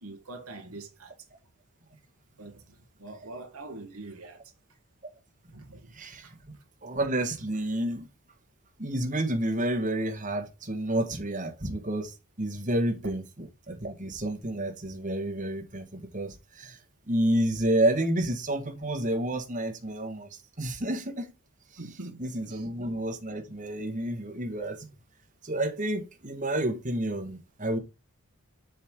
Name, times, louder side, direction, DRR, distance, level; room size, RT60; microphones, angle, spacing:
voice 1, 0.0-1.1 2.4-2.6 3.0-4.4 5.5-5.9 6.2-6.3 21.8-22.6, right 2 dB, 80° right, 1.6 m, -44 dB
voice 2, 5.9-6.3 6.8-8.1 8.8-16.8 17.1-20.3 20.6-21.3 22.2-24.9 25.4-27.8, right 1 dB, 35° right, 1.8 m, -30 dB
7.7 x 5.6 x 3.9 m
head